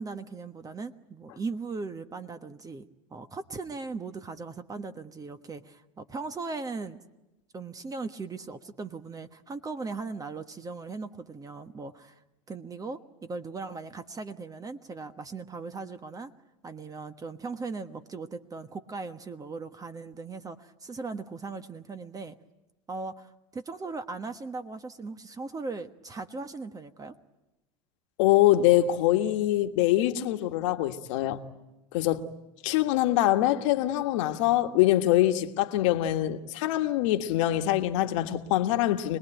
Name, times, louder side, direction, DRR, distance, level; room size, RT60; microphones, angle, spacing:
voice 1, 0.0-7.0 7.5-12.2 12.5-16.3 16.6-22.4 22.9-27.2, right 4 dB, 20° right, 1.3 m, -38 dB
voice 2, 28.2-31.4 31.9-32.2 32.6-39.2, left 14 dB, 75° left, 1.6 m, -24 dB
26.0 x 20.5 x 9.1 m
hypercardioid pair, 100°, 16 cm